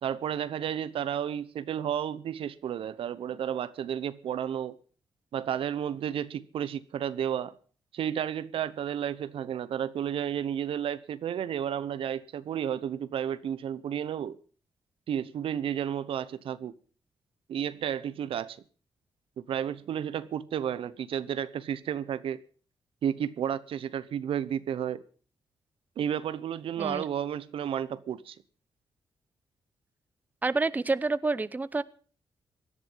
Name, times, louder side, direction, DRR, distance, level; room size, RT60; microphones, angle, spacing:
voice 1, 0.0-4.8 5.3-7.6 7.9-14.4 15.1-16.8 17.5-18.6 19.4-22.4 23.0-25.0 26.0-28.4, right 9 dB, 75° right, 0.9 m, -32 dB
voice 2, 30.4-31.8, right 3 dB, 20° right, 0.6 m, -28 dB
17.5 x 11.0 x 5.6 m
cardioid pair, 90°, 9 cm